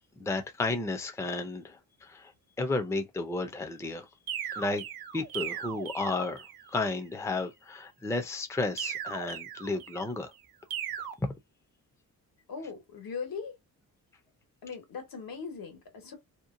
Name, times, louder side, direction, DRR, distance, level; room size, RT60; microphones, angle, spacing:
voice 1, 0.2-2.3 2.6-4.1 4.5-4.8 5.1-10.3 11.2-11.3, left 3 dB, 10° left, 0.5 m, -32 dB
sound 1, 4.3-6.7 8.8-10.1 10.7-11.1, right 9 dB, 80° right, 0.7 m, -38 dB
voice 2, 12.5-13.5 14.6-16.1, left 5 dB, 75° left, 1.4 m, -39 dB
2.8 x 2.1 x 2.5 m
cardioid pair, 105°, 36 cm